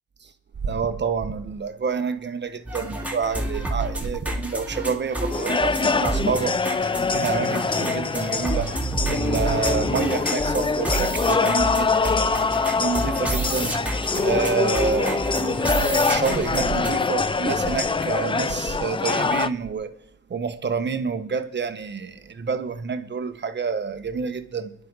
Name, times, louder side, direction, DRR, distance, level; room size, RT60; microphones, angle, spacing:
voice 1, 0.6-6.6 7.1-8.7 9.1-12.4 12.8-13.8 14.2-19.9 20.3-24.7, right 5 dB, 35° right, 1.3 m, -28 dB
sound 1, 2.7-16.9, right 1 dB, 5° right, 2.7 m, -30 dB
sound 2, 5.3-19.5, left 4 dB, 15° left, 0.5 m, -24 dB
23.0 x 11.0 x 4.1 m
cardioid pair, 90°, 30 cm